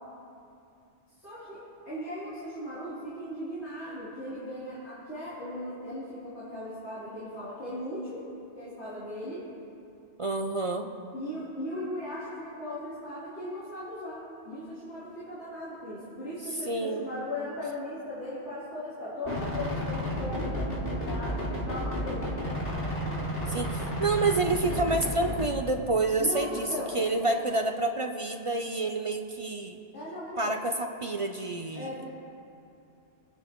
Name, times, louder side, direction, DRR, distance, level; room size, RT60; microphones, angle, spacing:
voice 1, 1.2-8.2 8.6-9.4 11.1-22.4 26.2-27.5 29.9-30.6 31.7-32.1, left 1 dB, 70° left, -12 dB, 3.6 m, -38 dB
voice 2, 10.2-10.9 16.7-17.1 23.5-26.7 26.9-29.8 30.4-31.9, right 2 dB, 40° right, 5 dB, 0.5 m, -28 dB
sound 1, 19.3-25.5, equal, 55° left, 2.5 m, -32 dB
24.5 x 9.7 x 3.0 m, 2.6 s
omnidirectional pair, 1.2 m